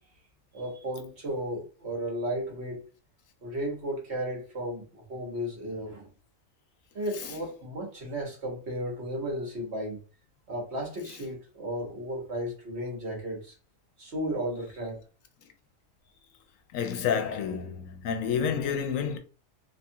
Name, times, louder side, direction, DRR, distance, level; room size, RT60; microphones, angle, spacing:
voice 1, 0.5-2.8 3.4-6.1 6.9-10.0 10.5-13.6 14.0-15.0, equal, 55° right, 1.3 m, -34 dB
voice 2, 16.7-19.2, left 7 dB, 80° left, 1.0 m, -29 dB
2.9 x 2.4 x 2.7 m
omnidirectional pair, 1.4 m